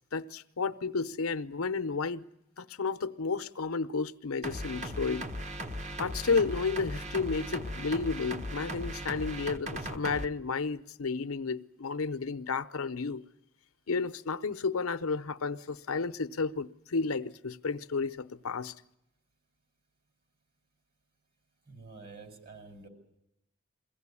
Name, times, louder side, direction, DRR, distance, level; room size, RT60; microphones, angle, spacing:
voice 1, 0.0-2.2 2.6-5.3 6.0-13.2 13.9-18.7, left 4 dB, 75° left, 0.7 m, -32 dB
sound 1, 4.4-10.3, equal, 35° right, 1.3 m, -38 dB
voice 2, 21.7-22.9, right 3 dB, 50° right, 5.1 m, -48 dB
22.5 x 16.5 x 9.7 m
head